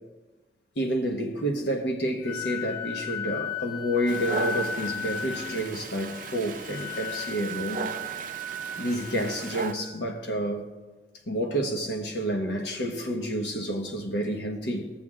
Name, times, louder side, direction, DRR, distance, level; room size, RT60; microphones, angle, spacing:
voice 1, 0.7-7.9 8.8-10.7 11.3-14.9, equal, 85° left, 1.2 m, -29 dB
Wind instrument woodwind instrument, 2.2-10.0, left 4 dB, 45° left, 2.1 m, -36 dB
Dog, 4.1-9.7, right 4 dB, 45° right, 0.4 m, -37 dB
18.5 x 7.0 x 2.5 m
head